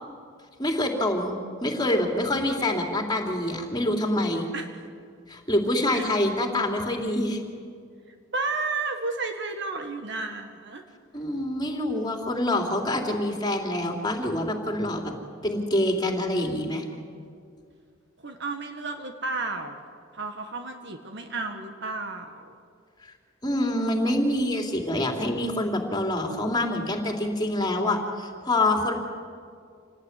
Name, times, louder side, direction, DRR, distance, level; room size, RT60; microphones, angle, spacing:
voice 1, 0.6-4.5 5.3-7.4 11.1-15.1 15.4-16.8 23.4-28.9, left 1 dB, 20° left, 2 dB, 3.3 m, -26 dB
voice 2, 8.1-10.8 11.9-12.6 18.2-19.8 20.1-22.5, right 3 dB, 60° right, 5 dB, 1.8 m, -33 dB
27.5 x 19.0 x 9.7 m, 2.3 s
head